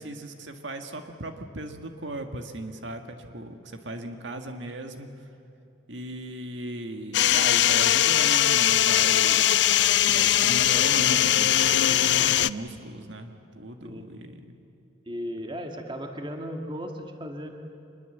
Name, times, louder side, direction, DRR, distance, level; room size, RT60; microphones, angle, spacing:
voice 1, 0.0-5.1 5.9-9.5 10.1-14.4, right 1 dB, 75° right, 5 dB, 1.8 m, -37 dB
sound 1, 7.1-12.5, left 11 dB, 65° left, 0.5 m, -21 dB
voice 2, 15.0-17.5, equal, 25° right, 3 dB, 1.6 m, -36 dB
25.5 x 21.5 x 8.0 m, 2.8 s
head